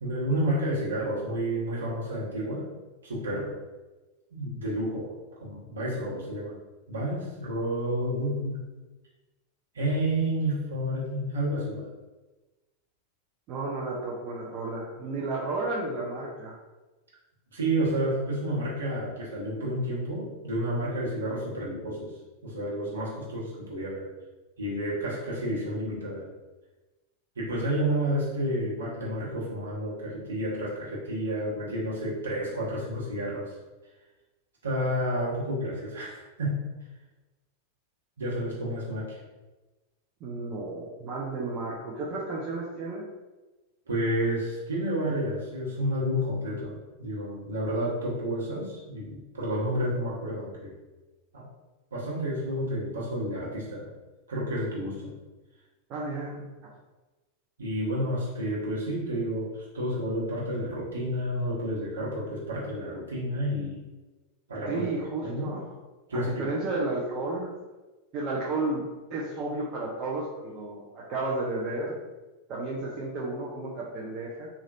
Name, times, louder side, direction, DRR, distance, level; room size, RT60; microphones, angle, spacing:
voice 1, 0.0-2.7 3.0-3.6 4.3-6.6 6.9-8.6 9.7-11.9 17.5-22.1 22.4-24.1 24.6-26.3 27.3-33.6 34.6-36.7 38.2-39.2 43.9-50.7 51.3-51.5 51.9-53.9 54.3-55.1 57.6-63.8 64.5-64.8 65.2-65.6 66.1-66.5, equal, 70° right, -6 dB, 1.1 m, -30 dB
voice 2, 13.5-16.6 40.2-43.0 55.9-56.5 64.7-65.6 66.1-67.5 68.1-68.8 69.1-71.9 72.5-74.5, right 2 dB, 40° right, -4 dB, 0.5 m, -32 dB
3.2 x 2.4 x 2.6 m, 1.1 s
figure-of-eight pair, 90°, 0 cm